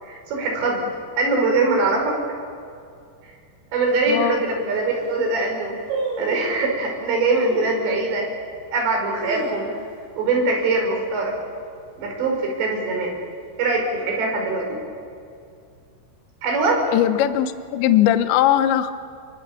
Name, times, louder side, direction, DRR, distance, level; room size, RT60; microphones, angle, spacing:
voice 1, 0.0-0.8 1.2-2.2 3.7-5.8 6.2-8.3 8.7-9.7 10.2-11.3 12.0-13.1 13.6-14.8 16.4-16.8, right 3 dB, 60° right, 1 dB, 7.0 m, -22 dB
sound 1, 3.9-4.0 4.6-4.7 4.9-5.3 5.9-6.6 7.4-7.8 8.3-8.4 9.0-10.1 10.4-10.5 10.8-11.2 11.6-11.9 12.6-13.3 13.6-13.7, right 2 dB, 75° right, 9.4 m, -32 dB
voice 2, 4.1-4.4 16.9-18.9, left 11 dB, 75° left, 10 dB, 2.9 m, -19 dB
29.0 x 24.5 x 7.2 m, 2.3 s
omnidirectional pair, 5.9 m